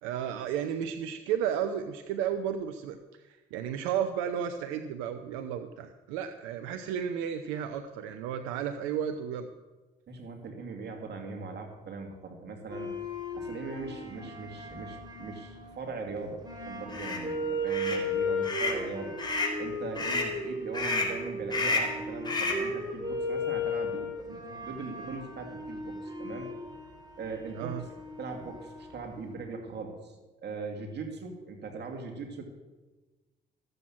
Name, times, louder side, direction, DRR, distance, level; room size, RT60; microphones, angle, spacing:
voice 1, 0.0-9.5 27.6-27.8, right 9 dB, 90° right, 8 dB, 0.7 m, -33 dB
voice 2, 10.1-12.9 13.4-19.1 19.6-26.5 27.2-27.7 28.2-30.2 30.4-32.4, right 4 dB, 60° right, 3 dB, 2.5 m, -40 dB
sound 1, 12.7-29.4, left 1 dB, 20° right, 4.3 m, -36 dB
sound 2, 16.9-17.2 17.7-18.0 18.4-18.8 19.2-19.6 19.9-20.3 20.7-21.2 21.5-22.0 22.2-22.7, left 3 dB, 20° left, 3.8 m, -30 dB
14.0 x 7.9 x 7.3 m, 1.2 s
supercardioid pair, 60°, 20 cm